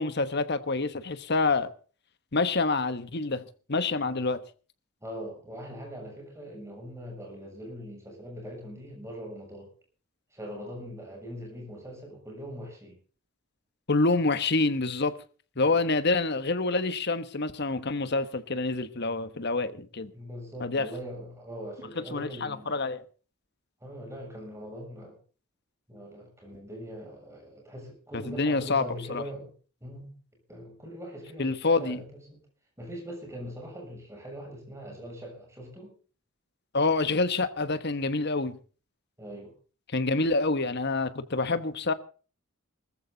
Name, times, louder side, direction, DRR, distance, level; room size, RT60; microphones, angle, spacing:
voice 1, 0.0-1.7 2.3-3.4 3.7-4.4 13.9-15.1 15.6-20.1 20.6-20.9 22.1-23.0 28.1-28.8 29.1-29.2 31.4-32.0 36.7-38.6 39.9-41.9, left 3 dB, 50° left, 1.2 m, -27 dB
voice 2, 5.0-9.7 10.3-13.0 15.6-15.9 20.1-22.8 23.8-25.2 25.9-29.5 29.8-30.1 30.5-32.4 32.8-36.0 39.2-39.5, equal, 15° right, 7.0 m, -41 dB
20.0 x 14.5 x 3.9 m
head